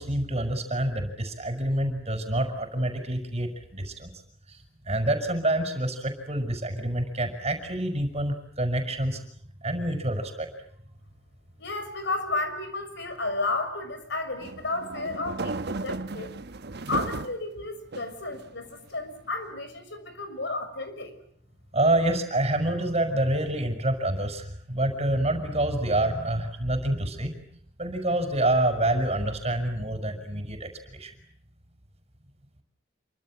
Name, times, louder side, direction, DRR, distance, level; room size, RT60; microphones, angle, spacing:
voice 1, 0.0-4.1 4.5-4.6 4.8-9.2 9.6-10.5 21.7-27.4 27.8-31.1, right 1 dB, 35° right, 7 dB, 5.9 m, -27 dB
voice 2, 11.6-16.3 16.9-21.1, left 2 dB, 65° left, 9 dB, 6.3 m, -32 dB
sound 1, 14.4-17.4 17.9-18.8, right 3 dB, 60° right, 1.1 m, -35 dB
28.5 x 25.0 x 7.7 m, 0.66 s
head